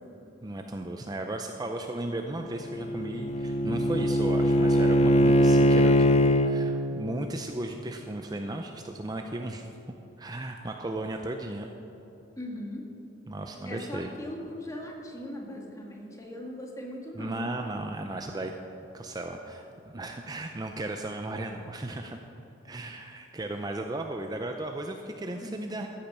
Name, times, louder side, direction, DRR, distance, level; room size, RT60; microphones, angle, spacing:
voice 1, 0.4-9.7 10.2-11.7 13.3-14.1 17.2-18.5 18.9-22.2 22.6-25.9, right 2 dB, 20° right, 4 dB, 0.5 m, -35 dB
Bowed string instrument, 2.4-6.5, equal, 35° left, 0.6 m, -22 dB
voice 2, 12.4-12.8 13.6-17.4 25.4-25.6, left 1 dB, 15° left, -1 dB, 1.8 m, -39 dB
14.0 x 8.6 x 6.0 m, 3.0 s
head